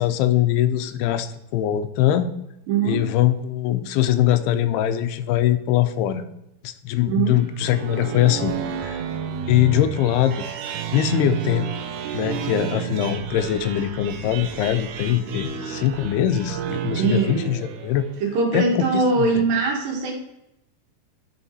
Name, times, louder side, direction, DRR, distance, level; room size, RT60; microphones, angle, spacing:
voice 1, 0.0-2.3 2.8-6.2 6.6-9.0 9.5-11.7 12.1-18.1 18.5-19.0 19.4-19.5, left 11 dB, 85° left, 10 dB, 2.6 m, -22 dB
voice 2, 2.7-3.1 7.1-7.4 16.9-17.5 18.2-20.1, right 4 dB, 65° right, 1 dB, 3.0 m, -22 dB
sound 1, 7.4-18.2, right 8 dB, 85° right, 1.8 m, -31 dB
11.5 x 4.5 x 4.1 m, 0.85 s
omnidirectional pair, 4.6 m